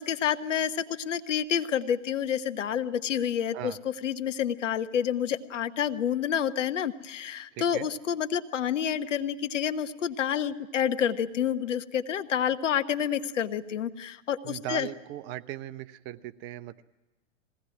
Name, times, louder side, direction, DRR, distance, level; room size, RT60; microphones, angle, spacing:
voice 1, 0.0-14.9, left 9 dB, 70° left, 10 dB, 1.3 m, -29 dB
voice 2, 7.5-7.9 14.4-16.8, right 14 dB, 30° right, 13 dB, 0.7 m, -38 dB
21.5 x 17.0 x 9.8 m, 1.1 s
hypercardioid pair, 110°, 38 cm